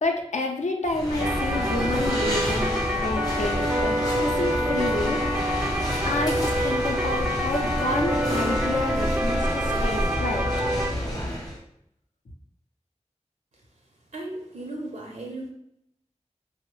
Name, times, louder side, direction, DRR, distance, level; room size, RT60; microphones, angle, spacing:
voice 1, 0.0-5.2 6.0-10.5, left 2 dB, 75° left, 3 dB, 0.5 m, -29 dB
sound 1, 0.9-11.6, equal, 30° left, 0.7 m, -29 dB
sound 2, 1.2-10.9, equal, 15° right, 0.3 m, -27 dB
voice 2, 14.1-15.5, right 2 dB, 85° right, -1 dB, 0.6 m, -36 dB
3.0 x 2.0 x 3.0 m, 0.75 s
wide cardioid pair, 45°, 12 cm